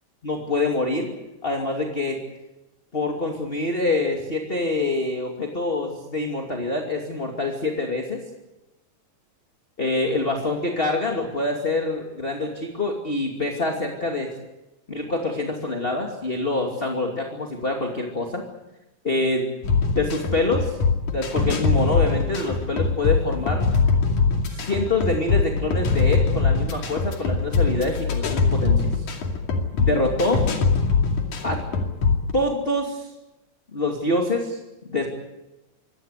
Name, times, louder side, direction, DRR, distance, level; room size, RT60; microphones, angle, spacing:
voice 1, 0.2-1.1 1.4-2.2 2.9-8.2 9.8-14.3 14.9-18.4 19.0-19.4 20.0-20.8 21.1-23.6 24.5-29.1 29.7-30.4 31.4-31.6 32.3-33.1 33.7-35.1, left 2 dB, 20° left, 2 dB, 2.4 m, -25 dB
sound 1, 19.6-32.3, left 4 dB, 70° left, 3.9 m, -22 dB
25.0 x 18.5 x 8.2 m, 1.0 s
omnidirectional pair, 3.6 m